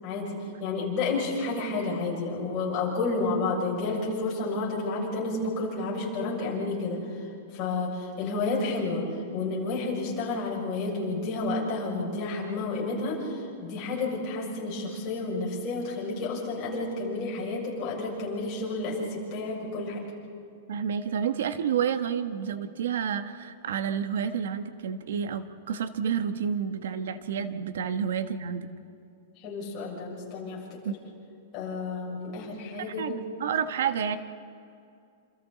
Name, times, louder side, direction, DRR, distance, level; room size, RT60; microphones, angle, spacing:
voice 1, 0.0-7.3 7.5-9.0 9.3-20.0 27.8-27.9 29.4-30.8 31.5-33.2, left 3 dB, 25° left, -4 dB, 6.6 m, -31 dB
voice 2, 20.7-28.7 30.8-30.9 32.8-34.2, right 7 dB, 75° right, 9 dB, 1.3 m, -30 dB
28.5 x 28.0 x 4.1 m, 2.5 s
supercardioid pair, 175°, 0 cm